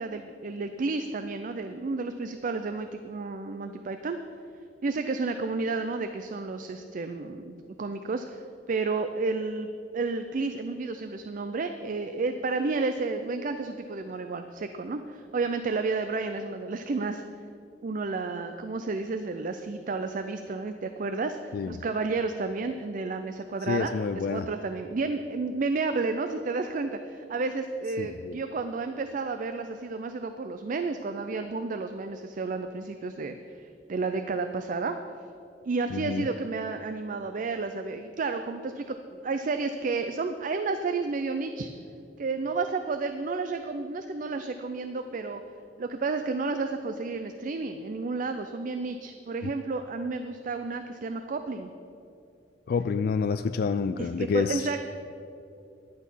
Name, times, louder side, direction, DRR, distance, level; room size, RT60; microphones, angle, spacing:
voice 1, 0.0-4.2 4.8-8.4 8.7-9.7 9.9-17.2 17.8-35.0 35.7-41.7 42.2-45.4 45.8-51.7 54.0-54.8, right 3 dB, 45° right, 7 dB, 0.4 m, -31 dB
voice 2, 23.6-24.5 28.0-28.4 35.9-36.2 49.4-49.5 52.7-54.7, left 5 dB, 55° left, 10 dB, 0.3 m, -28 dB
11.0 x 8.3 x 5.6 m, 2.6 s
head